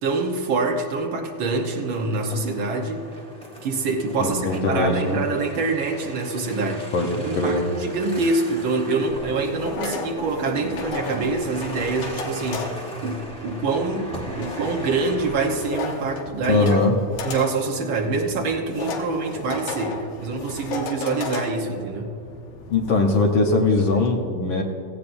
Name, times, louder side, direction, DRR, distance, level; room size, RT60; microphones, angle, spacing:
voice 1, 0.0-3.0 3.6-6.9 7.2-16.8 17.2-22.1, right 3 dB, 60° right, 1 dB, 1.4 m, -25 dB
sound 1, 1.3-16.2, equal, 5° left, 0.5 m, -40 dB
voice 2, 4.2-5.2 6.9-7.6 16.5-16.9 22.7-24.6, left 3 dB, 65° left, 1 dB, 1.3 m, -21 dB
tin mailbox, 9.1-24.1, left 3 dB, 80° left, 2.6 m, -35 dB
17.0 x 15.0 x 2.6 m, 2.7 s
omnidirectional pair, 3.3 m